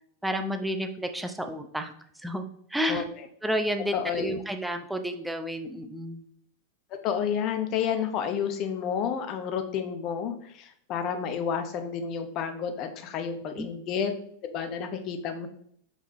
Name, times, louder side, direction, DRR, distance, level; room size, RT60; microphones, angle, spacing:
voice 1, 0.2-1.9 2.2-2.4 2.7-3.0 3.4-6.3 13.5-13.7, equal, 5° right, 6 dB, 0.7 m, -31 dB
voice 2, 3.9-4.3 6.9-14.1 14.5-15.5, left 7 dB, 35° left, 7 dB, 0.9 m, -30 dB
5.7 x 5.0 x 3.7 m, 0.65 s
figure-of-eight pair, 90°, 0 cm